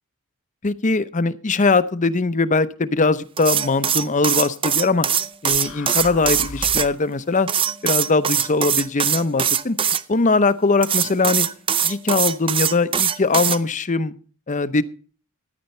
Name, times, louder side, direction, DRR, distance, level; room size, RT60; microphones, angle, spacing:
voice 1, 0.6-5.1 5.4-7.5 7.8-9.8 10.1-11.5 11.8-14.1 14.5-14.8, left 3 dB, 35° left, 14 dB, 0.7 m, -21 dB
sound 1, 3.4-6.9 7.5-10.0 10.8-13.6, right 8 dB, 25° right, 0.5 m, -21 dB
sound 2, 5.5-7.1, left 3 dB, 60° left, 1.1 m, -36 dB
15.0 x 10.5 x 4.3 m, 0.41 s
head